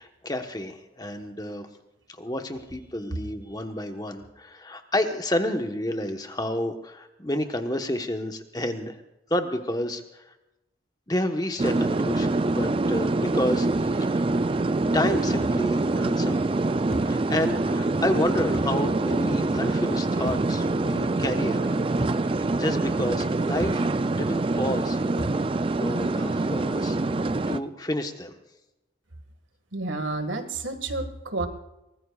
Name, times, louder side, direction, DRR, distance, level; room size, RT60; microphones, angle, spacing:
voice 1, 0.0-1.7 2.2-9.0 9.3-10.2 11.1-14.2 14.9-16.5 17.0-21.9 22.3-23.9 24.1-25.4 25.7-27.2 27.5-28.4, left 1 dB, 20° left, 5 dB, 1.2 m, -30 dB
sound 1, 11.6-27.6, right 2 dB, 30° right, 0.4 m, -25 dB
sound 2, 13.7-13.9 15.4-15.7 16.9-17.2 18.5-18.8 20.3-20.5 22.0-22.2 23.6-23.9 25.2-25.4, equal, 80° left, 4.6 m, -35 dB
voice 2, 29.7-31.5, right 3 dB, 90° right, 7 dB, 1.9 m, -30 dB
23.5 x 19.5 x 2.4 m, 0.94 s
head